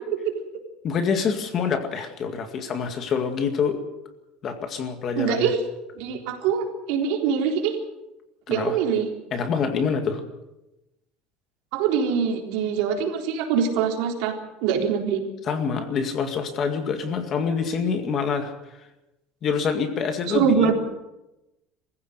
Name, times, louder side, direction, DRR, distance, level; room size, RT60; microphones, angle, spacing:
voice 1, 0.8-3.8 4.4-5.5 8.5-8.8 9.3-10.2 15.4-18.5 19.4-20.7, left 6 dB, 30° left, 7 dB, 2.0 m, -26 dB
voice 2, 5.2-5.6 5.9-7.7 8.5-9.1 11.7-14.3 14.6-15.2 20.3-20.7, right 7 dB, 65° right, 2 dB, 3.8 m, -23 dB
23.0 x 15.5 x 8.0 m, 0.97 s
cardioid pair, 180°, 0 cm